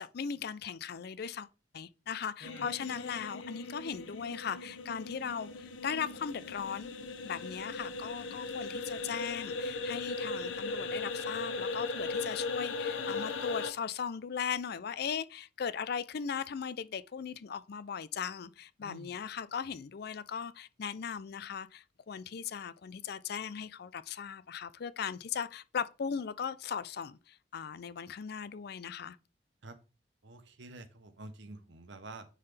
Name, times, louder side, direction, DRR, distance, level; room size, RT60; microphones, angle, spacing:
voice 1, 0.0-1.5 1.7-6.9 7.2-29.2, left 7 dB, 55° left, 0.4 m, -38 dB
sound 1, 2.4-13.7, left 3 dB, 90° left, 0.8 m, -38 dB
voice 2, 18.8-19.1 29.6-29.8 30.2-32.3, right 2 dB, 65° right, 0.9 m, -48 dB
9.6 x 3.8 x 3.3 m
head